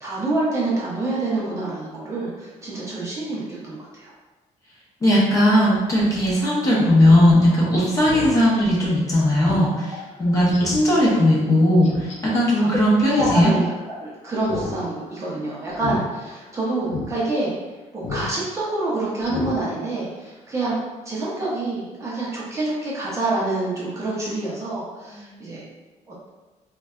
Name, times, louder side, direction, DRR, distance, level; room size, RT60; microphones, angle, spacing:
voice 1, 0.0-4.1 12.6-12.7 13.1-17.5 17.9-20.8 21.0-25.6 26.1-26.3, right 2 dB, 20° right, -7 dB, 0.6 m, -27 dB
voice 2, 5.0-9.9 10.2-13.5 25.2-25.4, left 1 dB, 25° left, -6 dB, 0.7 m, -18 dB
Speech synthesizer, 7.0-7.2 7.6-7.7 8.0-8.4 8.8-8.9 9.4-9.6 10.0-10.1 10.5-10.9 11.8-12.2 13.1-13.5 13.7-13.8 14.4-14.8 15.0-15.3 15.7-16.0 16.4-16.5 16.9-17.1 18.0-18.3 18.6-18.8 19.2-19.5 19.9-20.0, left 4 dB, 60° left, 0.5 m, -31 dB
3.9 x 2.2 x 2.3 m, 1.2 s
cardioid pair, 170°, 13 cm